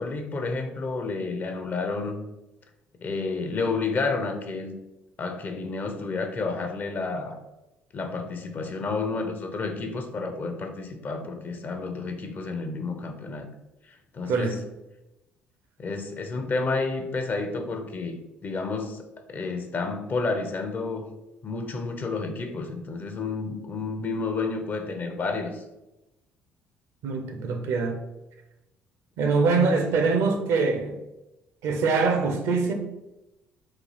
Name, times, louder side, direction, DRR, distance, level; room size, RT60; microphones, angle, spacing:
voice 1, 0.0-2.2 3.0-4.7 5.2-7.4 7.9-13.5 13.9-14.6 15.8-21.1 21.4-25.6, left 3 dB, 35° left, 0.5 m, -30 dB
voice 2, 14.2-14.6 27.0-28.0 29.2-30.9 31.6-32.7, right 4 dB, 55° right, 0.5 m, -23 dB
3.9 x 2.4 x 3.1 m
figure-of-eight pair, 50°, 5 cm